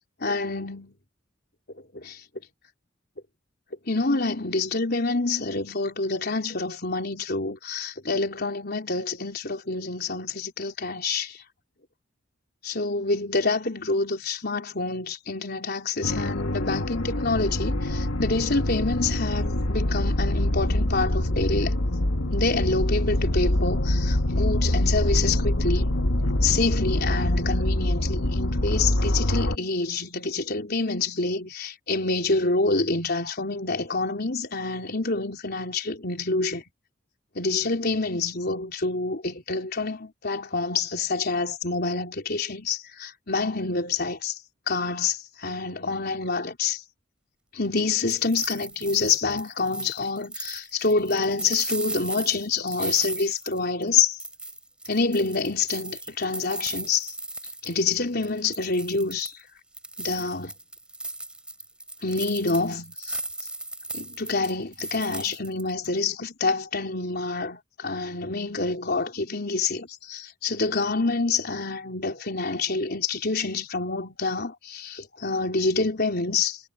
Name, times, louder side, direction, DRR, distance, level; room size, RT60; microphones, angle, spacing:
voice 1, 0.2-0.9 2.0-2.2 3.9-11.4 12.6-21.8 22.3-26.0 26.4-36.6 37.4-44.4 44.7-46.8 47.5-54.2 54.9-57.1 57.6-59.3 60.0-60.5 62.0-63.2 63.9-76.6, left 3 dB, 50° left, 4.2 m, -27 dB
sound 1, 16.0-29.6, left 1 dB, 80° left, 1.8 m, -25 dB
sound 2, 47.8-53.9 54.2-58.0 58.2-59.4 59.7-65.9, right 2 dB, 5° right, 5.5 m, -36 dB
head